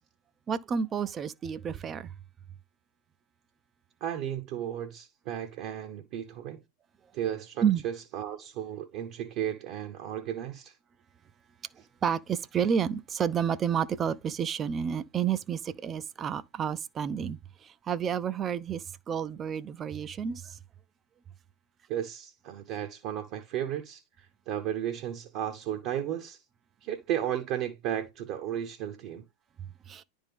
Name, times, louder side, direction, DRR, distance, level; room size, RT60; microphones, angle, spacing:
voice 1, 0.5-2.1 7.6-7.8 12.0-17.4 17.9-20.6 29.9-30.0, right 8 dB, 25° right, 0.4 m, -30 dB
voice 2, 4.0-6.6 7.1-10.8 21.9-26.4 26.8-29.2, right 10 dB, 45° right, 0.8 m, -34 dB
10.5 x 3.5 x 3.5 m
figure-of-eight pair, 90°, 0 cm